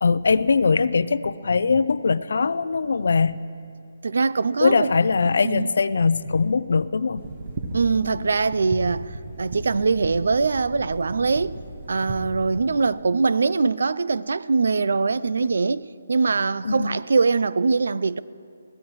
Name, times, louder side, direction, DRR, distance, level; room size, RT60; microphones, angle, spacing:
voice 1, 0.0-3.4 4.6-7.2 16.6-16.9, left 4 dB, 70° left, 0.5 m, -21 dB
voice 2, 4.0-4.9 5.4-5.7 7.7-9.1 9.4-11.6 11.9-18.2, right 4 dB, 70° right, 0.4 m, -22 dB
sound 1, 7.2-12.6, right 2 dB, 45° right, 1.4 m, -36 dB
22.0 x 16.5 x 3.1 m
figure-of-eight pair, 150°, 0 cm